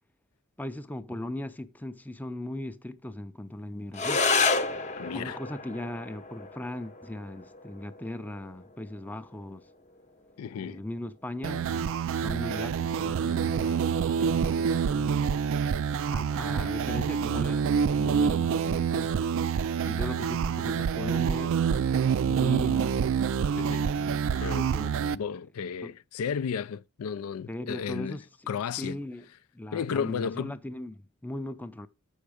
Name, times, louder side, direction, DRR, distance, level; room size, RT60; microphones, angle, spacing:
voice 1, 0.6-4.2 5.1-9.6 10.6-15.1 16.1-19.1 19.8-21.6 22.2-23.0 23.9-25.2 25.8-25.9 27.5-28.3 28.8-29.3 29.5-31.9, left 1 dB, 10° left, 0.5 m, -38 dB
sound 1, 3.9-12.9, left 4 dB, 35° left, 0.8 m, -32 dB
voice 2, 5.0-5.4 10.4-10.8 23.6-23.9 24.3-24.7 25.1-28.2 28.5-29.0 29.7-30.5, left 7 dB, 80° left, 0.4 m, -33 dB
sound 2, 11.4-25.2, right 7 dB, 65° right, 0.3 m, -27 dB
7.2 x 5.5 x 4.9 m
head